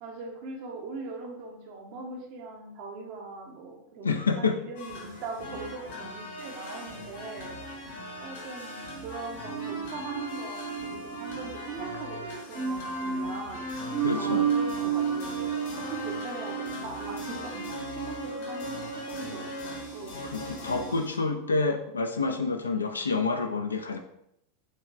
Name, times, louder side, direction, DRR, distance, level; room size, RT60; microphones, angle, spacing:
voice 1, 0.0-7.5 8.2-13.7 14.1-20.2 20.6-20.9, right 3 dB, 50° right, 1 dB, 0.8 m, -41 dB
voice 2, 4.0-4.6 14.0-14.5 20.3-24.0, left 4 dB, 85° left, 5 dB, 0.3 m, -28 dB
sound 1, 4.8-21.2, left 1 dB, 65° left, 1.1 m, -40 dB
sound 2, 9.5-21.7, right 7 dB, 20° right, 0.3 m, -34 dB
4.1 x 3.0 x 2.5 m, 0.78 s
figure-of-eight pair, 85°, 0 cm